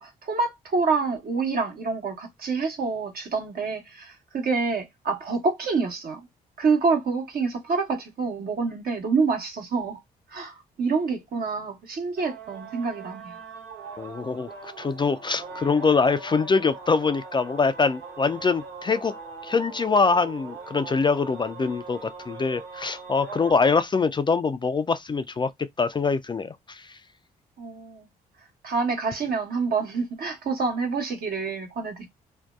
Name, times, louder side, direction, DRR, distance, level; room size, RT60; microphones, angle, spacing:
voice 1, 0.0-6.2 6.6-10.0 10.3-13.4 27.6-28.1 28.6-32.1, right 4 dB, 60° right, 1.1 m, -27 dB
sound 1, 12.2-23.5, right 4 dB, 80° right, 0.8 m, -41 dB
voice 2, 14.0-19.1 19.4-25.5 25.8-27.0, left 4 dB, 25° left, 0.3 m, -24 dB
2.6 x 2.1 x 2.3 m
supercardioid pair, 50°, 18 cm